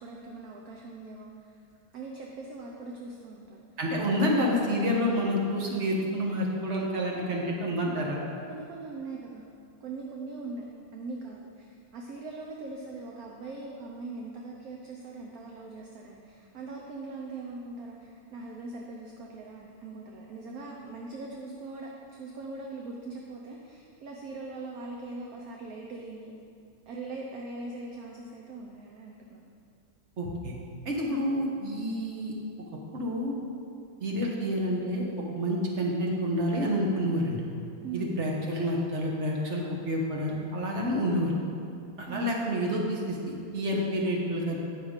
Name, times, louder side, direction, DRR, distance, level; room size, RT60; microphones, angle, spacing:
voice 1, 0.0-1.6 1.9-3.6 8.5-9.5 9.8-10.7 10.9-26.3 26.9-29.4 37.8-38.1 42.1-42.4, right 3 dB, 60° right, -1 dB, 1.0 m, -41 dB
voice 2, 3.8-8.2 30.2-30.5 30.8-32.3 32.9-33.3 34.0-35.0 35.3-37.4 37.9-41.3 42.0-44.6, equal, 40° right, -2 dB, 1.3 m, -28 dB
9.6 x 5.9 x 5.0 m, 2.5 s
omnidirectional pair, 2.1 m